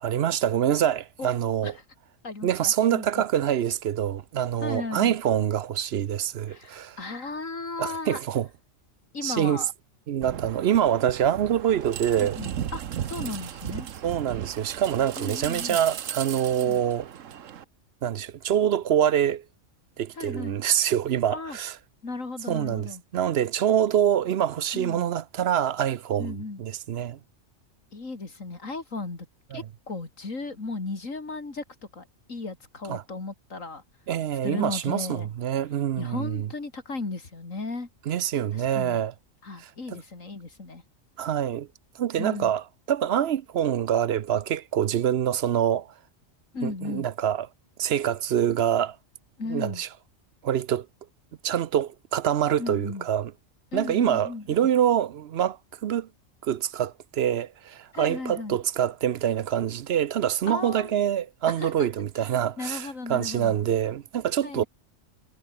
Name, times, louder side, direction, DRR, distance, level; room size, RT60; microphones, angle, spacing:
voice 1, 0.0-1.8 2.4-7.0 7.8-8.5 9.2-9.6 10.1-12.4 14.0-17.1 18.0-19.4 20.0-21.8 22.5-27.2 29.5-29.6 32.9-33.0 34.1-36.5 38.1-39.1 39.6-40.0 41.2-41.7 41.9-45.9 46.6-47.5 47.8-49.0 49.5-49.9 50.4-50.9 51.4-53.3 53.7-56.1 56.4-64.6, right 10 dB, 60° right, 0.8 m, -25 dB
voice 2, 2.2-3.3 4.6-5.2 6.5-8.2 9.1-9.7 12.2-13.9 15.2-15.8 16.6-16.8 20.1-20.6 21.3-21.6 22.0-23.0 24.7-25.1 26.2-26.6 27.9-29.3 29.5-31.6 31.9-33.8 34.4-35.3 36.0-37.9 38.5-39.0 39.4-40.8 42.2-42.5 46.5-47.1 49.4-49.8 52.6-53.1 53.7-54.5 57.9-58.6 60.5-61.0 61.5-61.9 62.6-63.6 64.4-64.7, left 3 dB, 85° left, 3.8 m, -35 dB
sound 1, 10.2-17.6, right 9 dB, 75° right, 1.3 m, -36 dB
omnidirectional pair, 1.3 m